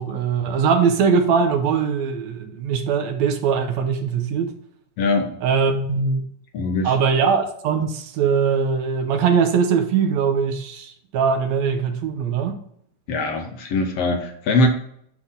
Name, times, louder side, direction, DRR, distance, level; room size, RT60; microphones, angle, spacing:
voice 1, 0.0-4.5 5.4-6.3 6.8-12.6, right 6 dB, 80° right, 2.0 m, -21 dB
voice 2, 5.0-5.4 6.5-7.0 13.1-14.7, left 2 dB, 65° left, 1.7 m, -22 dB
9.7 x 3.8 x 3.8 m
omnidirectional pair, 3.3 m